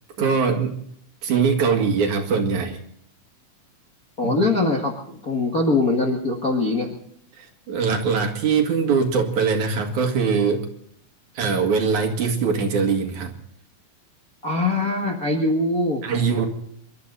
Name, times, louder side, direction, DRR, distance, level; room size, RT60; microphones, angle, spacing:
voice 1, 0.2-0.7 1.2-2.8 4.2-4.3 7.4-10.7 11.3-13.3 16.0-16.5, right 5 dB, 70° right, 3 dB, 3.3 m, -22 dB
voice 2, 4.2-6.9 14.4-16.0, left 2 dB, 35° left, -1 dB, 1.9 m, -22 dB
26.5 x 12.5 x 4.0 m, 0.64 s
omnidirectional pair, 3.6 m